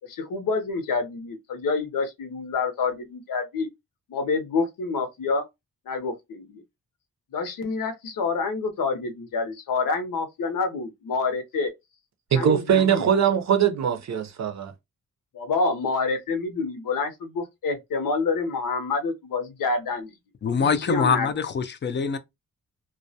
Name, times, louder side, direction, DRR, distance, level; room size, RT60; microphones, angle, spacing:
voice 1, 0.0-3.7 4.1-5.4 5.9-6.6 7.3-11.7 12.4-13.1 15.3-20.1 20.6-21.3, left 4 dB, 85° left, 0.7 m, -27 dB
voice 2, 12.3-14.7, right 8 dB, 55° right, 0.5 m, -21 dB
voice 3, 20.4-22.2, left 5 dB, 35° left, 0.4 m, -24 dB
2.2 x 2.1 x 2.6 m
cardioid pair, 100°, 32 cm